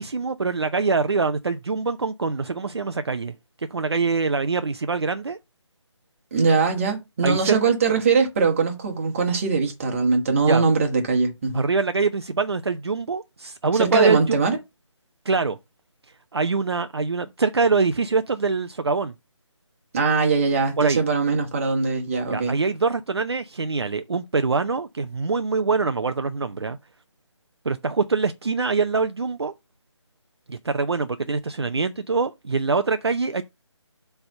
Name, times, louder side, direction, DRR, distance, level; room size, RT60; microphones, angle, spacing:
voice 1, 0.0-5.4 7.2-7.6 10.5-10.6 11.5-14.4 15.3-15.6 16.3-19.1 20.8-21.0 22.3-26.8 27.6-29.5 30.5-33.4, right 4 dB, 55° right, 0.6 m, -24 dB
voice 2, 6.3-11.6 13.7-14.6 19.9-22.6, right 4 dB, 25° right, 1.5 m, -21 dB
7.6 x 3.5 x 5.5 m
figure-of-eight pair, 155°, 16 cm